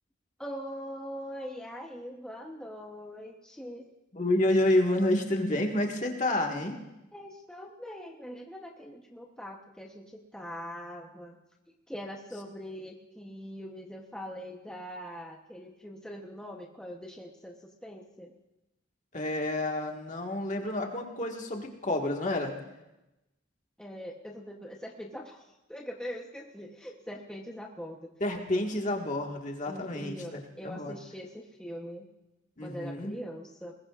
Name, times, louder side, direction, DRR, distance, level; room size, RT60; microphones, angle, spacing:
voice 1, 0.4-3.9 7.1-11.4 11.9-18.3 23.8-28.1 29.7-32.1 32.6-33.8, equal, 5° left, -1 dB, 0.9 m, -42 dB
voice 2, 4.1-6.8 19.1-22.5 28.2-30.9 32.6-33.1, left 1 dB, 40° left, 1 dB, 1.7 m, -29 dB
21.0 x 20.5 x 2.5 m, 0.97 s
head